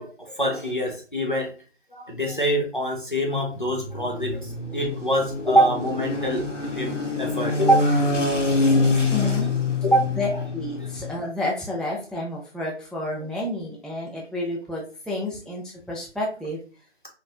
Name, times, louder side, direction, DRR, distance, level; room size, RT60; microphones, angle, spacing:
voice 1, 0.0-1.5 1.9-6.4 6.7-8.1 8.3-9.3 9.8-10.1, right 1 dB, 45° left, 0 dB, 0.7 m, -25 dB
sound 1, 3.5-11.2, left 3 dB, 85° left, 0.9 m, -25 dB
voice 2, 9.1-9.5 10.2-16.6, left 1 dB, ahead, -3 dB, 0.4 m, -30 dB
3.0 x 2.6 x 2.3 m, 0.37 s
figure-of-eight pair, 175°, 36 cm